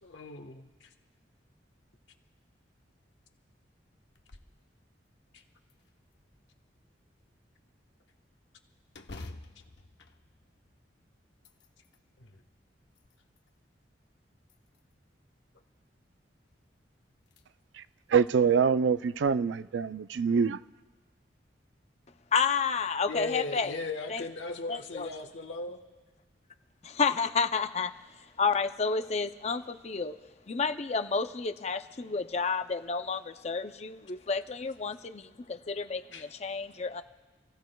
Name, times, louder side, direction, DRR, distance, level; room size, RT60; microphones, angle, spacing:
voice 1, 0.0-0.9 5.3-5.4 12.2-12.3 23.1-25.8 36.1-36.3, left 3 dB, 85° left, 1.3 m, -37 dB
sound 1, 4.1-4.6 5.1-5.2 5.7-6.5 8.9-10.9 11.3-12.0 12.7-13.5 14.4-15.1 16.6-16.7 17.2-17.4 17.9-18.0 19.0-19.3, left 2 dB, 65° left, 0.8 m, -49 dB
voice 2, 18.1-20.6, right 6 dB, 80° right, 0.4 m, -25 dB
voice 3, 22.3-23.7 24.1-24.2 24.7-25.1 27.0-27.9 28.4-30.1 30.5-33.2 33.4-33.9 34.3-34.9 35.8-36.0 36.4-37.0, left 5 dB, 35° left, 0.5 m, -29 dB
29.0 x 16.0 x 2.3 m
head